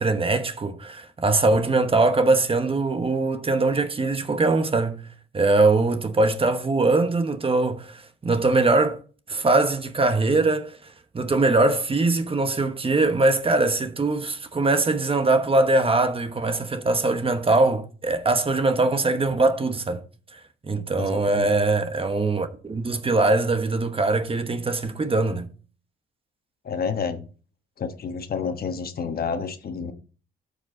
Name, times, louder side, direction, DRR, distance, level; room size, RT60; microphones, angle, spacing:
voice 1, 0.0-5.0 5.3-9.0 9.3-20.0 20.3-25.5, right 3 dB, 30° right, 1.1 m, -22 dB
voice 2, 21.0-21.5 26.6-27.2 27.8-29.9, left 6 dB, 50° left, 1.2 m, -29 dB
13.0 x 5.1 x 3.9 m
cardioid pair, 90°, 20 cm